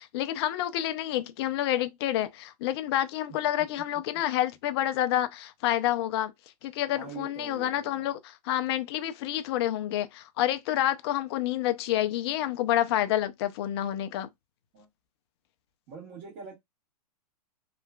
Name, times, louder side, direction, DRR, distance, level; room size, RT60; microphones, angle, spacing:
voice 1, 0.0-6.3 6.6-8.2 8.5-14.3, left 12 dB, 40° left, 0.4 m, -28 dB
voice 2, 6.9-8.1 14.7-14.9 15.9-16.6, right 5 dB, 40° right, 1.3 m, -44 dB
2.9 x 2.4 x 2.2 m
hypercardioid pair, 115°, 20 cm